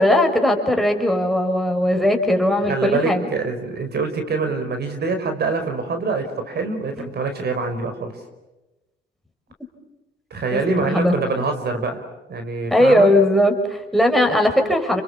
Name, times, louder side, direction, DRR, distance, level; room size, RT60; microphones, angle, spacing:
voice 1, 0.0-3.3 7.0-7.1 10.5-11.1 12.7-15.0, left 1 dB, ahead, 2 dB, 5.6 m, -18 dB
voice 2, 2.7-8.1 10.3-12.0 12.3-13.1, right 4 dB, 55° right, 7 dB, 5.0 m, -25 dB
29.5 x 27.0 x 7.2 m, 1.0 s
cardioid pair, 90°, 20 cm